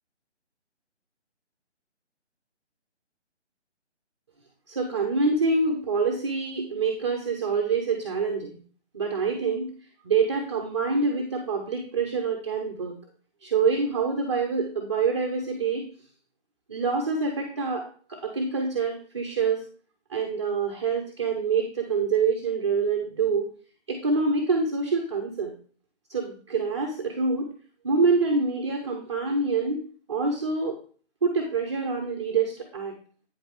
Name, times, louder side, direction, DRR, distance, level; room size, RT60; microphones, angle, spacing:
voice 1, 4.7-8.6 8.9-9.7 10.0-13.0 13.4-15.9 16.7-19.6 20.1-23.5 23.9-25.5 26.1-27.5 27.8-29.8 30.1-30.8 31.2-32.9, right 4 dB, 25° right, 1 dB, 0.7 m, -26 dB
8.6 x 5.2 x 3.6 m, 0.43 s
figure-of-eight pair, 155°, 36 cm